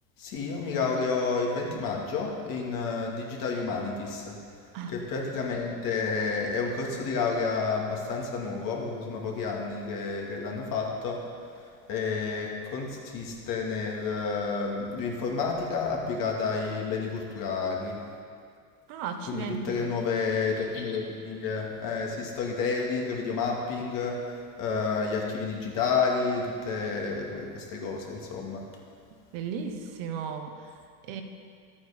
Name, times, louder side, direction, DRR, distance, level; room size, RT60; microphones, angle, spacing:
voice 1, 0.2-4.4 4.9-11.2 11.9-18.0 19.3-28.6, left 4 dB, 45° left, 0 dB, 2.3 m, -30 dB
voice 2, 18.9-19.9 29.3-31.2, right 5 dB, 65° right, 6 dB, 1.3 m, -36 dB
12.5 x 8.6 x 5.1 m, 2.2 s
supercardioid pair, 120°, 44 cm